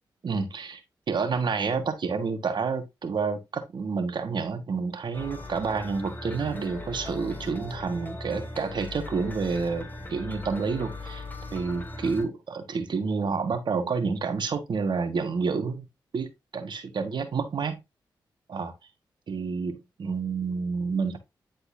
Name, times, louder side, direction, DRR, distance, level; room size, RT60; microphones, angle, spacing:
voice 1, 0.2-0.8 1.1-11.2 11.5-15.9 16.1-16.3 16.5-17.8 18.5-18.7 19.3-21.2, right 5 dB, 65° right, 1.6 m, -29 dB
sound 1, 5.1-12.2, left 2 dB, 20° left, 2.0 m, -39 dB
10.5 x 4.3 x 2.7 m
cardioid pair, 55°, 8 cm